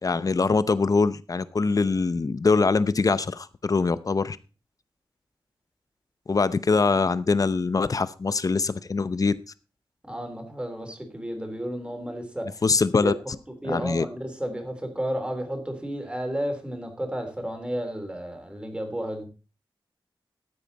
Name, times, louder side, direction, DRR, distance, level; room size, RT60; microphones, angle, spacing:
voice 1, 0.0-4.4 6.3-9.3 12.6-13.1 13.7-14.1, left 4 dB, 40° left, 15 dB, 0.7 m, -23 dB
voice 2, 10.1-12.6 13.0-13.1 13.6-19.3, equal, 10° right, 4 dB, 3.2 m, -32 dB
13.5 x 9.0 x 4.1 m, 0.34 s
wide cardioid pair, 115°, 9 cm